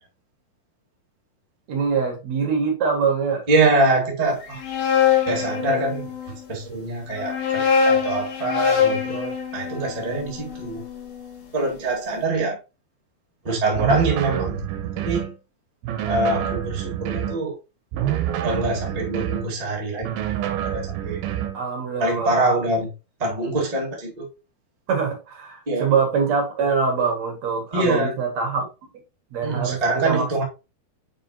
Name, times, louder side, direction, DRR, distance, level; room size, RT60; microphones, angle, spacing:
voice 1, 1.7-3.4 21.5-22.4 24.9-28.6 29.3-30.4, right 5 dB, 55° right, 2.6 m, -24 dB
voice 2, 3.5-4.6 5.3-10.8 11.5-12.6 13.4-14.6 14.9-15.3 16.0-17.5 18.4-20.1 20.6-21.2 22.0-22.9 23.2-24.3 25.7-25.9 27.7-28.2 29.4-30.4, right 2 dB, 35° right, 0.5 m, -24 dB
sound 1, 4.4-6.3 7.1-11.3, left 6 dB, 70° left, 3.5 m, -23 dB
sound 2, 13.7-15.3 15.8-17.4 17.9-19.5 20.0-21.6, right 11 dB, 75° right, 2.5 m, -27 dB
7.5 x 4.9 x 2.8 m
omnidirectional pair, 4.5 m